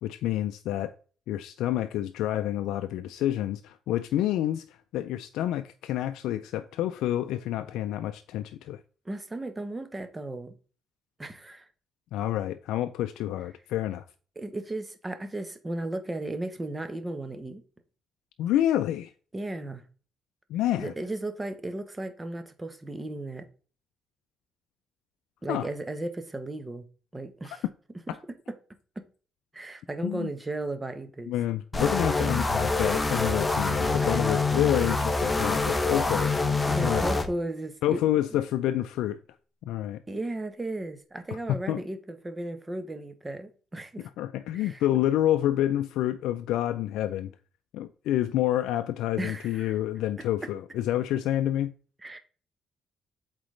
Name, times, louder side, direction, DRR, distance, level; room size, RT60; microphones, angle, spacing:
voice 1, 0.0-0.9 1.3-8.8 12.1-14.0 18.4-19.1 20.5-20.9 25.5-25.7 28.1-28.2 30.0-30.3 31.3-36.3 36.8-37.1 37.8-39.2 39.7-40.0 41.3-41.8 44.2-47.3 47.7-51.7, left 12 dB, 90° left, 0.3 m, -28 dB
voice 2, 9.0-10.5 11.2-11.7 14.4-17.6 19.3-19.8 20.7-23.5 25.4-26.9 27.1-27.6 28.1-28.2 28.5-28.6 29.0-29.1 29.5-31.3 34.0-34.2 36.6-38.0 40.1-44.1 44.5-44.8 49.2-49.7 52.0-52.2, right 2 dB, 20° right, 1.0 m, -35 dB
sound 1, 31.7-37.3, left 3 dB, 20° left, 0.9 m, -26 dB
7.8 x 4.0 x 3.2 m
cardioid pair, 90°, 0 cm